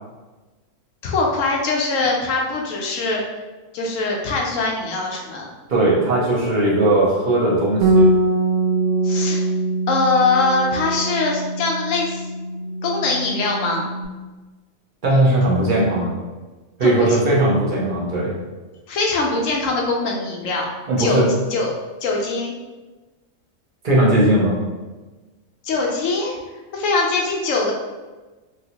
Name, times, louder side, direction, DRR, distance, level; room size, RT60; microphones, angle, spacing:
voice 1, 1.0-3.2 3.7-5.5 9.0-9.4 9.9-12.2 12.8-13.9 16.8-17.2 18.9-20.7 21.0-21.2 21.5-21.7 22.0-22.5 25.6-26.3 26.7-27.7, left 3 dB, 75° left, -1 dB, 1.0 m, -22 dB
voice 2, 5.7-8.1 15.0-16.2 16.8-18.3 20.9-21.3 23.8-24.6, right 1 dB, 40° right, -6 dB, 0.9 m, -18 dB
Bass guitar, 7.8-14.1, right 2 dB, 80° right, 1.0 m, -22 dB
3.0 x 2.8 x 2.8 m, 1.2 s
omnidirectional pair, 1.4 m